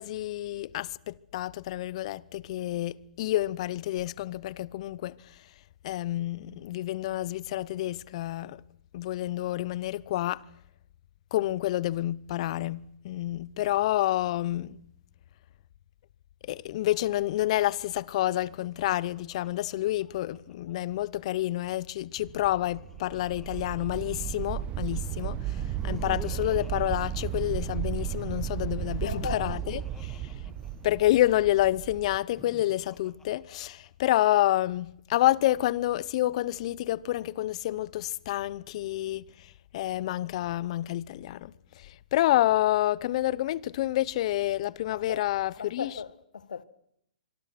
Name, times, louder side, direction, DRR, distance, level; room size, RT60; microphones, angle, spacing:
voice 1, 0.0-5.2 5.8-8.6 8.9-10.4 11.3-14.8 16.4-30.3 30.8-45.9, left 14 dB, 50° left, 0.9 m, -29 dB
Laughter, 18.4-20.9 22.3-24.7 25.5-28.0 28.9-31.3 32.2-34.1, left 3 dB, 10° left, 2.3 m, -51 dB
sound 1, 22.2-32.2, right 10 dB, 30° right, 1.1 m, -34 dB
voice 2, 29.0-29.8 30.5-30.6 44.9-45.2 45.6-46.6, left 6 dB, 85° left, 1.6 m, -38 dB
25.5 x 23.5 x 6.1 m
hypercardioid pair, 135°, 4 cm